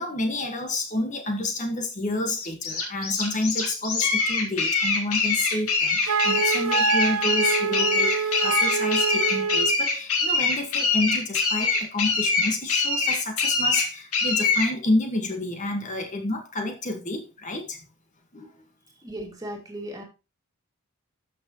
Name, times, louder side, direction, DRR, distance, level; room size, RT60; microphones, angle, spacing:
voice 1, 0.0-17.8 18.3-18.5, left 2 dB, 35° left, 1.6 m, -29 dB
sound 1, 2.3-14.7, left 4 dB, 85° left, 2.5 m, -24 dB
Wind instrument woodwind instrument, 6.1-9.8, right 6 dB, 75° right, 0.6 m, -25 dB
voice 2, 19.0-20.0, right 1 dB, 15° right, 2.3 m, -36 dB
13.0 x 6.1 x 3.0 m
head